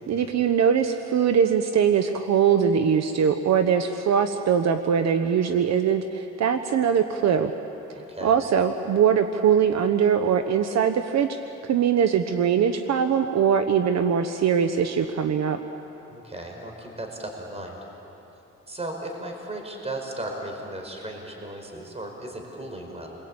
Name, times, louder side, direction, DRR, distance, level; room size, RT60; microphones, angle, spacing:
voice 1, 0.1-7.5 8.2-15.6, right 7 dB, 60° right, 7 dB, 1.2 m, -22 dB
voice 2, 7.9-8.4 16.1-17.8 18.7-23.1, right 1 dB, 20° right, 2 dB, 5.0 m, -36 dB
29.0 x 22.0 x 8.8 m, 3.0 s
cardioid pair, 90°, 30 cm